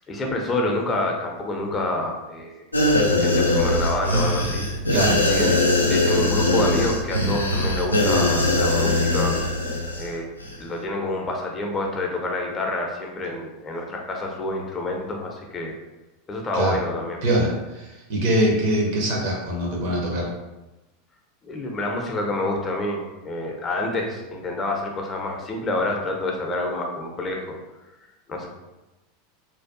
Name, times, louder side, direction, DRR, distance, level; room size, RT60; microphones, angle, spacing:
voice 1, 0.1-2.6 3.1-4.7 5.3-5.5 5.9-9.4 10.0-10.2 10.6-15.7 16.3-17.2 21.4-27.6 28.3-28.5, left 2 dB, 25° left, 0 dB, 0.5 m, -27 dB
sound 1, 2.7-10.1 10.4-10.5, left 1 dB, 85° left, 0.3 m, -21 dB
voice 2, 4.9-5.2 16.5-16.8 17.2-20.3, right 1 dB, 50° right, -2 dB, 0.7 m, -23 dB
2.6 x 2.2 x 2.5 m, 1.0 s
figure-of-eight pair, 85°, 0 cm